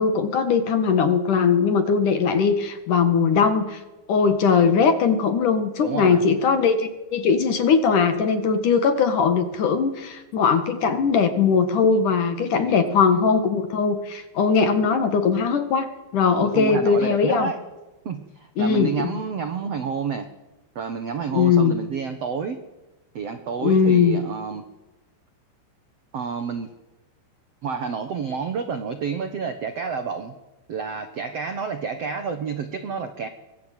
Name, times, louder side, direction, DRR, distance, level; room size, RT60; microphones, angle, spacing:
voice 1, 0.0-3.8 4.1-17.5 18.6-19.1 21.3-21.8 23.6-24.2, left 5 dB, 55° left, 9 dB, 2.6 m, -20 dB
voice 2, 5.8-6.2 12.6-13.0 16.4-17.6 18.0-20.3 20.7-22.6 23.1-24.7 26.1-26.7 27.6-30.3 30.7-33.3, right 6 dB, 80° right, 9 dB, 1.4 m, -29 dB
24.0 x 20.0 x 9.2 m, 1.1 s
omnidirectional pair, 5.2 m